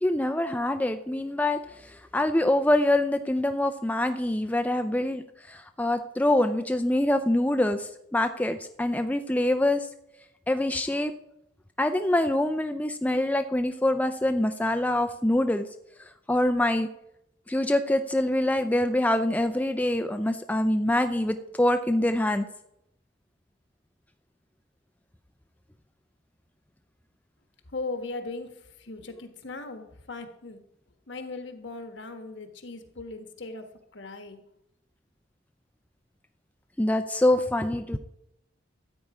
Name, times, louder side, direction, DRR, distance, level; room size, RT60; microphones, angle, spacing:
voice 1, 0.0-1.6 1.9-5.2 5.5-9.9 10.5-11.1 11.8-15.7 16.3-16.9 17.5-22.4 36.8-38.0, left 1 dB, 10° left, 8 dB, 0.4 m, -25 dB
voice 2, 27.7-30.6 31.1-33.7 33.9-34.4, left 3 dB, 70° left, 7 dB, 1.3 m, -38 dB
13.5 x 8.6 x 4.9 m, 0.81 s
head